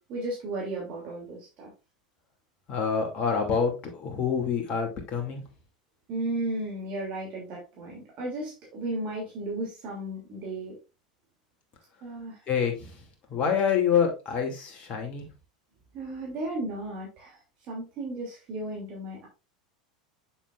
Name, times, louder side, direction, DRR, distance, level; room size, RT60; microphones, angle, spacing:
voice 1, 0.0-1.7 6.1-10.8 12.0-12.4 15.9-17.4 17.7-19.3, right 2 dB, 40° right, -3 dB, 3.0 m, -34 dB
voice 2, 2.7-5.4 12.5-13.0 13.3-15.3, left 6 dB, 35° left, 3 dB, 2.7 m, -27 dB
8.0 x 7.1 x 2.5 m, 0.29 s
figure-of-eight pair, 80°, 4 cm